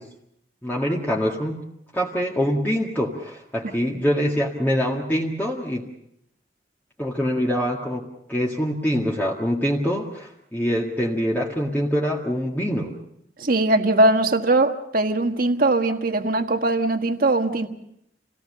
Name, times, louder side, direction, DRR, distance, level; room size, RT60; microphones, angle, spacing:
voice 1, 0.6-1.6 1.9-5.9 7.0-12.9, equal, 10° left, -3 dB, 1.9 m, -24 dB
voice 2, 13.4-17.7, right 2 dB, 50° right, 6 dB, 1.6 m, -20 dB
27.5 x 18.0 x 6.8 m, 0.77 s
head